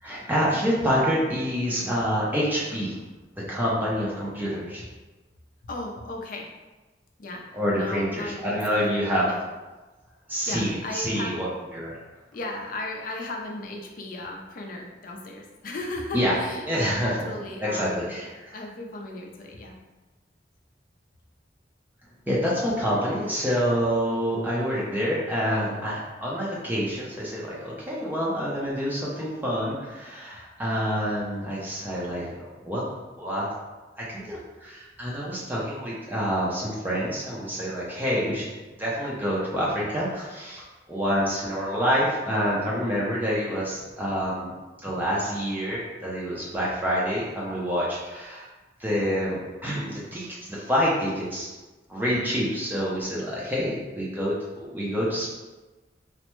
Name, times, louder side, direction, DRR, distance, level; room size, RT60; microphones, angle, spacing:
voice 1, 0.0-3.0 3.4-4.8 7.5-9.3 10.3-11.5 11.7-12.0 16.1-16.3 16.7-17.3 17.6-18.5 22.3-32.3 32.6-32.8 33.2-33.5 34.0-38.5 38.8-44.5 44.8-48.5 48.8-51.5 51.9-55.4, equal, 10° right, -7 dB, 0.5 m, -27 dB
voice 2, 5.6-6.5 7.2-7.5 7.7-9.0 9.3-9.4 10.5-11.4 12.3-18.2 18.5-19.8, left 2 dB, 50° left, 0 dB, 0.4 m, -36 dB
3.2 x 2.1 x 3.0 m, 1.2 s
head